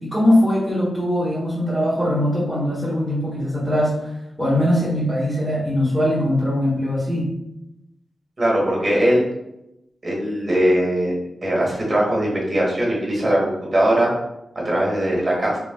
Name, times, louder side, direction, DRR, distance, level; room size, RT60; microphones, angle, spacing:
voice 1, 0.0-4.1 4.4-7.3, left 1 dB, ahead, -12 dB, 1.5 m, -21 dB
voice 2, 8.4-9.2 10.0-11.1 11.4-14.1 14.6-15.6, right 1 dB, 40° right, -3 dB, 1.3 m, -20 dB
3.2 x 3.1 x 2.2 m, 0.87 s
cardioid pair, 65°, 0 cm